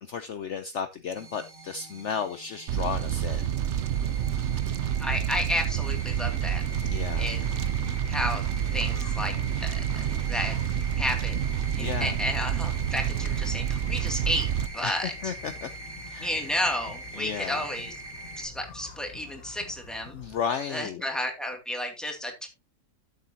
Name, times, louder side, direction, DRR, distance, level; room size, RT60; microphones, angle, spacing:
voice 1, 0.0-3.5 6.9-7.3 11.8-12.2 14.8-15.7 16.1-16.3 17.2-17.6 20.1-21.0, left 7 dB, 60° left, 9 dB, 1.0 m, -33 dB
sound 1, 1.2-18.4, right 2 dB, 35° right, 2.4 m, -43 dB
Fire, 2.7-14.7, right 10 dB, 60° right, 0.8 m, -28 dB
voice 2, 5.0-6.6 7.2-7.4 8.1-8.4 8.7-9.3 9.6-9.8 10.2-10.6 10.9-11.4 11.8-15.1 16.2-17.9 18.4-20.2 20.7-22.5, left 1 dB, ahead, 3 dB, 2.4 m, -31 dB
sound 2, 6.4-20.4, left 4 dB, 75° left, 2.0 m, -47 dB
13.0 x 7.4 x 2.8 m, 0.24 s
omnidirectional pair, 1.5 m